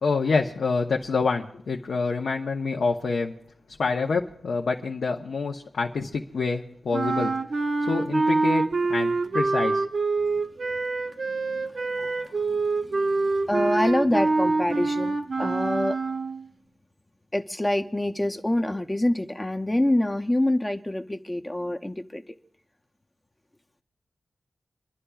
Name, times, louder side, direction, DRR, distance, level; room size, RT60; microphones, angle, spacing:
voice 1, 0.0-3.3 3.8-7.3 7.9-9.8, left 4 dB, 80° left, 0.8 m, -27 dB
sound 1, 6.9-16.5, right 3 dB, 55° right, 0.8 m, -25 dB
voice 2, 11.3-16.0 17.3-22.3, left 1 dB, 15° left, 0.6 m, -27 dB
27.5 x 11.0 x 2.3 m
wide cardioid pair, 120°, 0 cm